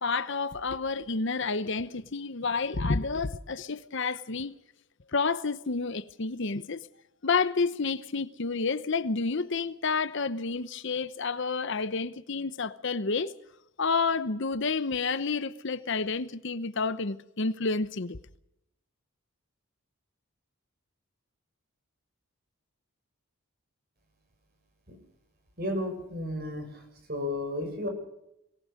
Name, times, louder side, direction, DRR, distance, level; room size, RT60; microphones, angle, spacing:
voice 1, 0.0-4.6 5.1-6.8 7.2-13.3 13.8-18.2, left 4 dB, 55° left, 0.8 m, -30 dB
voice 2, 25.6-26.8 27.1-27.9, left 1 dB, 45° right, 6.8 m, -33 dB
23.5 x 19.0 x 6.5 m
head